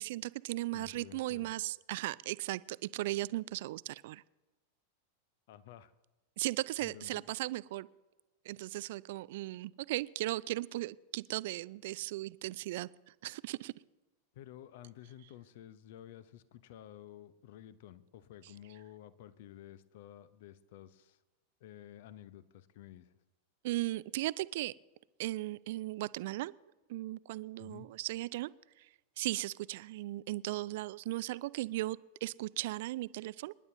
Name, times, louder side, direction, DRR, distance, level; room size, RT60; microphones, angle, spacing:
voice 1, 0.0-4.2 6.4-7.9 8.4-12.9 13.2-13.7 23.6-24.7 25.2-26.5 26.9-28.5 28.8-28.9 29.2-33.5, right 17 dB, 50° right, 20 dB, 0.3 m, -37 dB
voice 2, 0.7-1.5 5.5-5.9 6.8-7.3 14.3-21.2 21.6-23.2 27.6-27.9, left 12 dB, 50° left, 16 dB, 0.7 m, -52 dB
27.5 x 11.0 x 2.7 m, 1.1 s
figure-of-eight pair, 90°, 0 cm